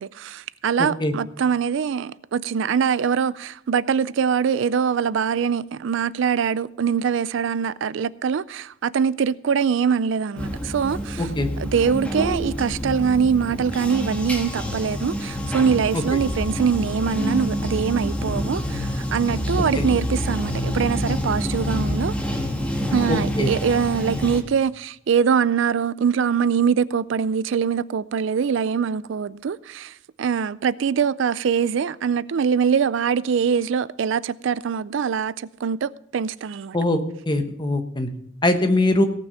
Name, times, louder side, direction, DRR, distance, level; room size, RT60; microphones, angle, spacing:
voice 1, 0.0-11.3 11.6-22.1 22.9-36.8, right 6 dB, 65° right, 0.4 m, -23 dB
voice 2, 0.8-1.1 11.2-11.5 15.9-16.2 19.7-19.9 23.1-23.5 36.7-37.0 37.3-38.1 38.4-39.1, left 1 dB, 25° left, 1.1 m, -22 dB
Bathtub (filling or washing), 10.4-24.4, equal, 5° left, 1.5 m, -27 dB
17.5 x 6.1 x 5.6 m
head